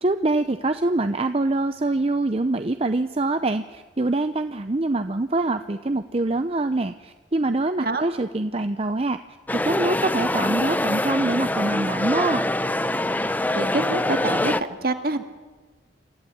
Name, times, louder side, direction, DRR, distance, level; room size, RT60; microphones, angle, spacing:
voice 1, 0.0-9.2 9.6-12.4, right 2 dB, 30° right, 9 dB, 0.7 m, -24 dB
sound 1, 9.5-14.6, left 1 dB, 10° left, 0.6 m, -24 dB
voice 2, 13.5-15.2, right 2 dB, 55° right, 7 dB, 1.9 m, -26 dB
27.5 x 14.5 x 9.4 m, 1.3 s
head